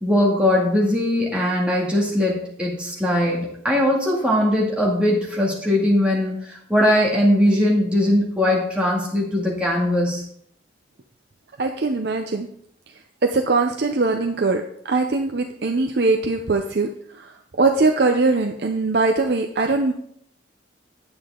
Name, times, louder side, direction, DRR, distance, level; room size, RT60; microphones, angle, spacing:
voice 1, 0.0-10.3, left 1 dB, 5° right, -4 dB, 2.3 m, -20 dB
voice 2, 11.6-12.5 13.2-19.9, right 3 dB, 55° right, 4 dB, 0.6 m, -21 dB
9.8 x 8.3 x 3.7 m, 0.67 s
head